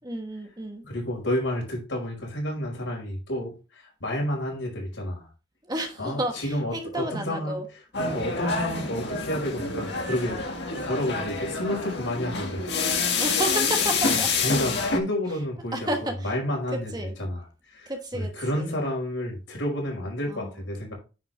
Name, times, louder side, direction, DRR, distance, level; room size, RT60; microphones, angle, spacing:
voice 1, 0.0-0.8 5.6-7.6 8.7-8.9 13.1-14.3 15.7-16.3 16.9-17.1 17.9-18.7 20.3-20.6, right 1 dB, 20° right, 1.2 m, -31 dB
voice 2, 0.8-5.3 6.0-7.6 8.0-10.4 10.9-12.8 14.1-15.9 16.2-16.9 17.2-20.9, left 1 dB, 80° left, 5.1 m, -30 dB
sound 1, 7.9-15.0, left 4 dB, 60° left, 1.8 m, -27 dB
9.5 x 5.8 x 3.3 m
head